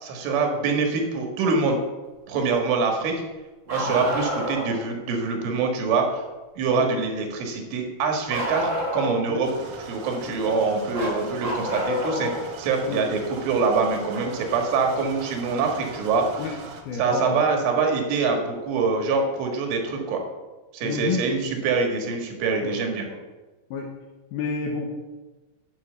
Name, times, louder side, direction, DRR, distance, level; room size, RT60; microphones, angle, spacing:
voice 1, 0.0-1.8 2.3-3.2 3.7-6.2 6.6-9.5 9.9-12.3 12.6-16.6 16.9-20.2 20.7-23.0, right 4 dB, 85° right, 3 dB, 4.1 m, -24 dB
Bark, 3.7-4.8 8.3-9.3 10.9-12.4 14.1-14.2 16.1-16.2 17.3-17.4, equal, 45° right, 0.9 m, -28 dB
sound 1, 9.4-16.8, right 4 dB, 70° right, 2.1 m, -41 dB
voice 2, 16.9-17.4 20.8-21.5 22.6-22.7 23.1-23.2 23.7-23.9 24.3-24.9, left 5 dB, 75° left, 2 dB, 2.4 m, -30 dB
9.8 x 6.1 x 7.8 m, 1.2 s
omnidirectional pair, 5.4 m